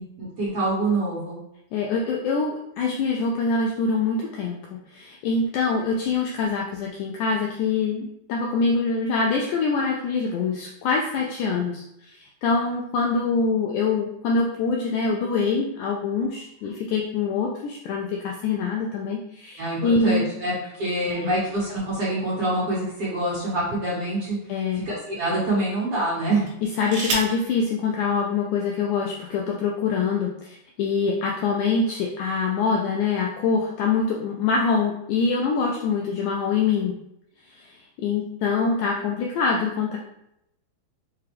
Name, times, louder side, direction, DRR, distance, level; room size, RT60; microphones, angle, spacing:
voice 1, 0.0-1.4 19.6-24.4 24.7-26.5, right 2 dB, 50° right, -8 dB, 2.0 m, -26 dB
voice 2, 1.7-20.2 20.9-21.3 24.5-24.8 26.6-37.0 37.5-40.0, left 4 dB, 80° left, -1 dB, 1.7 m, -25 dB
sound 1, 22.7-23.9 24.6-24.8 26.4-27.5 28.6-28.7 29.0-29.4, right 3 dB, 70° right, 1.9 m, -32 dB
5.9 x 2.3 x 3.3 m, 0.81 s
omnidirectional pair, 3.8 m